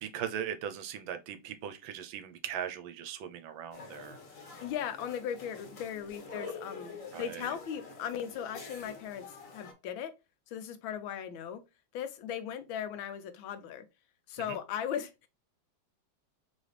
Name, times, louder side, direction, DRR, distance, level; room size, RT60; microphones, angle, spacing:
voice 1, 0.0-4.2 6.3-6.5 7.1-7.5 14.4-14.6, right 9 dB, 80° right, 1.4 m, -39 dB
sound 1, 3.7-9.7, left 4 dB, 50° left, 1.3 m, -47 dB
voice 2, 4.6-10.1 10.5-11.6 11.9-13.8 14.3-15.3, left 9 dB, 85° left, 1.5 m, -38 dB
4.1 x 3.2 x 3.2 m
omnidirectional pair, 2.1 m